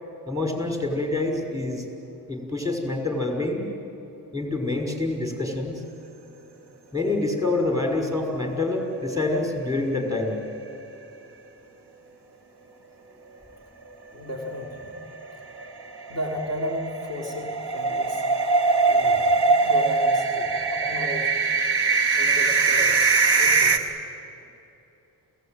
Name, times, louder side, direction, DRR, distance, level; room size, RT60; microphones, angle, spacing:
voice 1, 0.3-1.8 2.3-3.6 4.3-5.8 6.9-10.4, left 2 dB, 10° right, 2 dB, 5.9 m, -26 dB
sound 1, 8.8-9.8 10.1-10.2 10.5-10.6 14.7-23.8, right 4 dB, 75° right, 1.6 m, -22 dB
voice 2, 14.1-14.9 16.1-18.2 18.8-19.3 19.6-21.3 22.1-23.0 23.4-23.9, equal, 40° right, 0 dB, 4.6 m, -34 dB
28.0 x 17.5 x 9.3 m, 3.0 s
cardioid pair, 45°, 40 cm